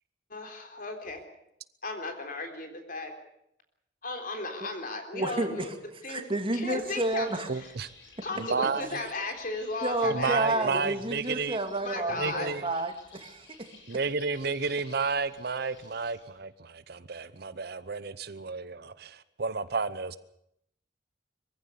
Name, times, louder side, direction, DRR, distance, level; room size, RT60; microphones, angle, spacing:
voice 1, 0.3-1.2 1.8-3.1 4.0-5.7 6.0-6.3 6.5-7.3 7.6-7.7 8.2-10.8 11.8-12.5, left 2 dB, 55° left, 5 dB, 3.7 m, -35 dB
voice 2, 5.1-5.7 6.1-7.5 9.8-13.7, right 2 dB, 30° right, 6 dB, 2.3 m, -30 dB
Bird, 6.7-16.4, left 3 dB, 85° left, 7.8 m, -55 dB
voice 3, 7.5-7.9 8.4-9.0 10.1-11.6 12.2-12.7 13.9-20.2, right 4 dB, 60° right, 15 dB, 0.8 m, -31 dB
22.5 x 15.0 x 8.3 m, 0.76 s
head